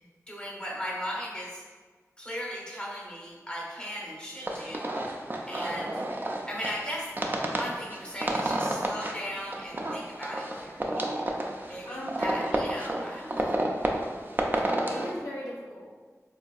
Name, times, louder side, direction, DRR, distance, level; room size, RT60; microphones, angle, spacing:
voice 1, 0.3-1.6 2.2-4.9 5.5-6.0 6.5-7.1 7.3-11.0 11.6-13.7, equal, 15° left, -4 dB, 0.8 m, -37 dB
sound 1, 4.4-15.1, right 1 dB, 35° right, 0.4 m, -31 dB
voice 2, 11.9-12.2 14.2-16.1, left 1 dB, 85° left, -5 dB, 0.5 m, -40 dB
3.8 x 2.6 x 2.3 m, 1.4 s
wide cardioid pair, 60°, 6 cm